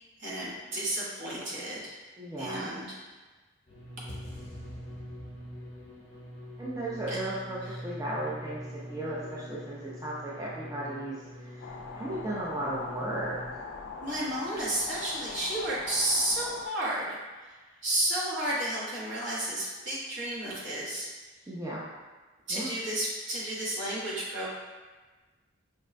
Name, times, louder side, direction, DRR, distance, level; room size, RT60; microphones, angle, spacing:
voice 1, 0.2-2.0 2.4-3.0 7.1-7.2 7.7-7.8 14.0-17.5 17.8-21.1 22.5-24.5, right 1 dB, 60° right, -7 dB, 1.0 m, -32 dB
voice 2, 2.2-2.7 6.6-13.4 21.5-21.8 22.5-22.7, right 1 dB, 15° right, -7 dB, 0.4 m, -35 dB
sound 1, 3.7-13.5, equal, 35° left, 0.8 m, -43 dB
sound 2, 11.6-16.7, left 4 dB, 60° left, 0.3 m, -42 dB
5.2 x 2.1 x 2.5 m, 1.3 s
head